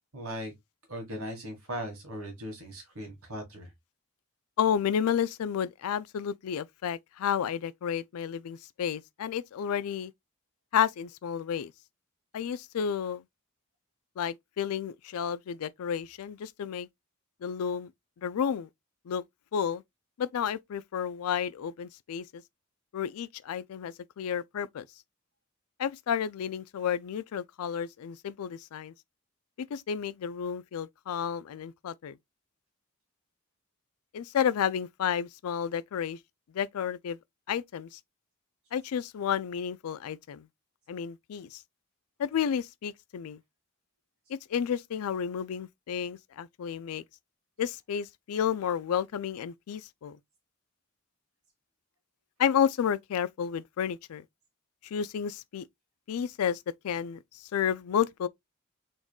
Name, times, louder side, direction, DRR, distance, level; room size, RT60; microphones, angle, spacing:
voice 1, 0.1-0.5 0.9-3.7, equal, 80° right, 1.7 m, -38 dB
voice 2, 4.6-10.1 10.7-11.7 12.3-13.2 14.2-16.9 17.4-17.9 18.2-18.7 19.1-19.2 19.5-19.8 20.2-22.4 22.9-24.9 25.8-28.9 29.7-32.1 34.1-36.2 36.5-37.2 37.5-38.0 38.7-40.5 40.9-41.6 42.2-43.4 44.5-47.0 47.6-50.2 52.4-54.2 54.8-55.6 56.1-58.3, left 8 dB, 85° left, 0.4 m, -31 dB
3.9 x 3.6 x 2.3 m
head